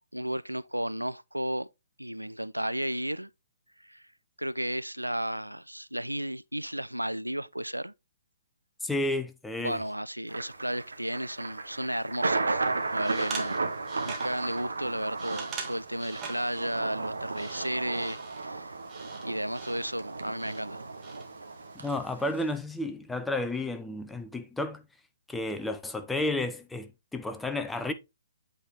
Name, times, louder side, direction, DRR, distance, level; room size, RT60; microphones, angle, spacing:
voice 1, 0.0-1.7 2.0-3.3 3.8-4.0 4.4-7.9 9.6-12.6 12.9-13.6 14.0-18.7 19.2-20.8, right 1 dB, 90° right, 0.3 m, -33 dB
voice 2, 8.8-9.8 21.8-24.8 25.3-27.9, left 2 dB, 5° left, 0.6 m, -32 dB
Thunder, 10.3-22.6, right 3 dB, 70° right, 1.0 m, -34 dB
sound 1, 12.6-22.5, right 5 dB, 20° right, 1.6 m, -45 dB
8.3 x 4.0 x 3.4 m
figure-of-eight pair, 130°, 0 cm